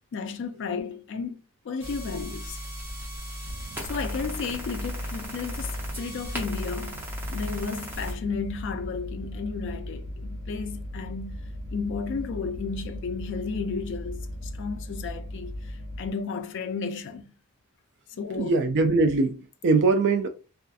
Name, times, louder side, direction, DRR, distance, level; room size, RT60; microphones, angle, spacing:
voice 1, 0.1-1.4 1.6-2.6 3.8-7.0 7.3-17.3 18.2-18.5, left 5 dB, 55° left, 0.3 m, -33 dB
sound 1, 1.8-8.1, equal, 10° right, 0.6 m, -36 dB
sound 2, 3.4-16.1, equal, 80° right, 0.7 m, -37 dB
voice 2, 18.3-20.3, right 3 dB, 55° right, 0.4 m, -22 dB
2.5 x 2.4 x 2.3 m
head